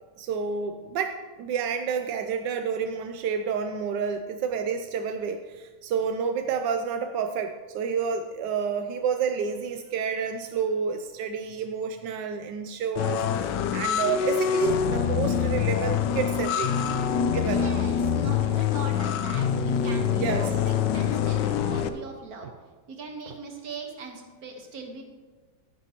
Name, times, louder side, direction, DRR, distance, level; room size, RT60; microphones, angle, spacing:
voice 1, 0.2-16.7 17.3-17.6 20.2-20.5 22.4-22.5 23.3-23.4, right 6 dB, 85° right, 6 dB, 1.3 m, -29 dB
sound 1, 13.0-21.9, left 8 dB, 80° left, 1.2 m, -25 dB
voice 2, 17.4-22.5 22.9-25.0, right 3 dB, 60° right, 3 dB, 1.7 m, -40 dB
12.0 x 10.0 x 2.9 m, 1.3 s
omnidirectional pair, 1.9 m